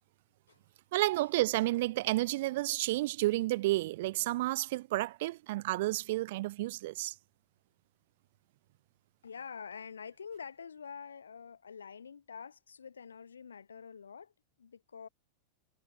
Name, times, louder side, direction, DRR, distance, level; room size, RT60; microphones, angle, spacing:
voice 1, 0.9-7.1, right 18 dB, 50° right, 0.5 m, -31 dB
voice 2, 9.2-14.3 14.6-15.1, left 6 dB, 70° left, 1.1 m, -46 dB
figure-of-eight pair, 90°, 0 cm